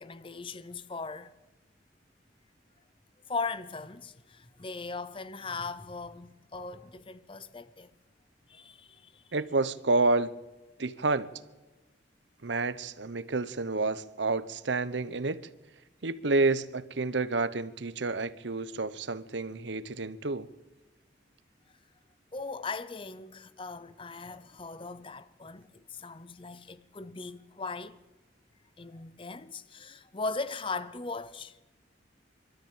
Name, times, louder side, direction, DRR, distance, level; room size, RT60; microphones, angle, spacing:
voice 1, 0.0-1.3 3.3-7.9 8.5-9.2 22.3-28.0 28.8-31.6, left 4 dB, 30° left, 0.8 m, -39 dB
voice 2, 9.3-10.3 10.8-11.3 12.4-15.4 16.0-20.5, right 3 dB, 70° right, 0.9 m, -29 dB
23.5 x 13.0 x 8.8 m
head